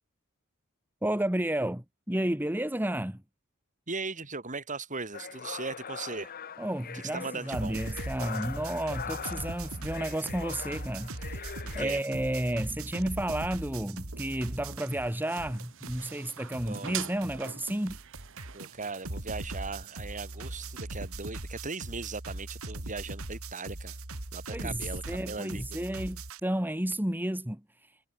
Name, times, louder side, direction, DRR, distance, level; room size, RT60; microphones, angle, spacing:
voice 1, 1.0-3.2 6.6-11.5 11.7-18.0 24.5-28.1, right 1 dB, 10° right, 1.7 m, -32 dB
voice 2, 3.9-6.3 6.9-7.8 11.6-12.0 16.7-16.9 18.5-24.0 24.3-25.9, right 4 dB, 35° right, 3.6 m, -38 dB
sound 1, 5.1-11.9, left 7 dB, 45° left, 0.9 m, -42 dB
sound 2, 7.5-15.1 15.4-26.4, right 2 dB, 80° right, 3.1 m, -40 dB
sound 3, 14.0-21.2, right 9 dB, 65° right, 1.6 m, -46 dB
head